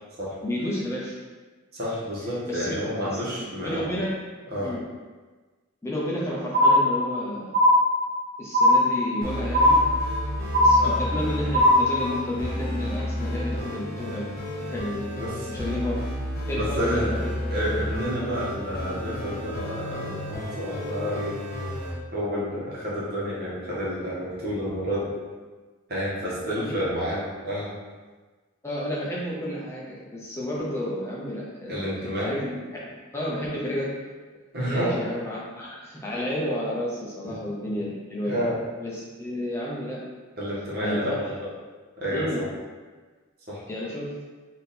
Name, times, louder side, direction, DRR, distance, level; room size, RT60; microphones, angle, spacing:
voice 1, 0.4-1.2 2.5-3.2 3.6-4.2 4.6-4.8 5.8-7.6 8.4-9.8 10.6-15.1 15.5-16.0 16.5-17.5 26.5-26.8 28.6-33.9 34.7-38.5 38.8-40.0 40.8-41.2 42.1-42.4 43.7-44.2, left 1 dB, 15° left, -5 dB, 0.5 m, -31 dB
voice 2, 1.7-3.9 4.5-4.7 10.8-10.9 15.2-15.5 16.5-17.2 17.5-21.4 22.1-25.1 25.9-27.7 31.7-32.3 34.5-35.0 37.2-37.4 37.7-37.8 38.2-38.6 40.4-41.5 42.0-42.5 43.5-43.6, equal, 50° right, -7 dB, 1.2 m, -29 dB
sound 1, 6.5-7.2 7.5-8.2 8.5-9.2 9.5-10.2 10.5-11.2 11.5-12.1, left 1 dB, 80° right, 1.1 m, -18 dB
sound 2, 9.2-21.9, equal, 45° left, 1.1 m, -32 dB
3.5 x 2.7 x 4.1 m, 1.3 s
head